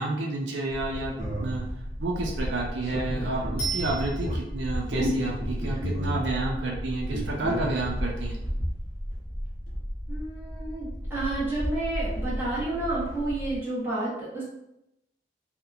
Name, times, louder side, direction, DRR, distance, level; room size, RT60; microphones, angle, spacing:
voice 1, 0.0-1.7 2.0-8.4, right 2 dB, 80° right, -1 dB, 0.4 m, -30 dB
sound 1, 0.8-13.6, equal, 45° right, 0.8 m, -32 dB
Bicycle bell, 3.6-4.7 13.8-13.9, right 5 dB, 70° left, 0.7 m, -34 dB
voice 2, 10.1-14.4, right 2 dB, 10° right, -10 dB, 1.0 m, -30 dB
2.8 x 2.1 x 2.4 m, 0.85 s
head